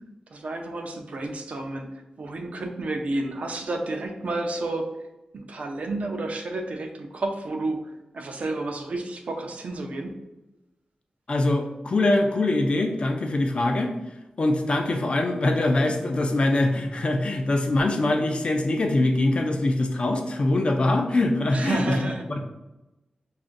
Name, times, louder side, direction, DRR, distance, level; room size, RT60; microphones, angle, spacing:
voice 1, 0.3-4.9 5.3-7.9 8.1-10.1 21.5-22.4, right 2 dB, 65° right, 3 dB, 0.5 m, -31 dB
voice 2, 11.3-13.9 14.4-21.8 22.3-22.4, left 2 dB, 45° left, 4 dB, 0.5 m, -23 dB
5.0 x 2.5 x 2.5 m, 0.99 s
wide cardioid pair, 120°, 3 cm